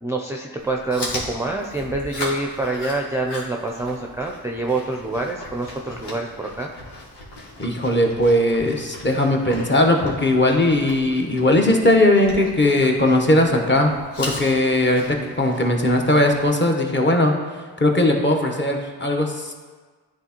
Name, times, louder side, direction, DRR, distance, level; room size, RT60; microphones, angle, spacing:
voice 1, 0.0-6.7, right 2 dB, 5° right, 0 dB, 0.4 m, -26 dB
Chewing mastication, 0.6-16.5, left 1 dB, 80° left, 1.5 m, -38 dB
voice 2, 7.6-19.5, left 1 dB, 25° left, 1 dB, 1.0 m, -19 dB
9.8 x 3.5 x 2.9 m, 1.4 s
cardioid pair, 60°, 41 cm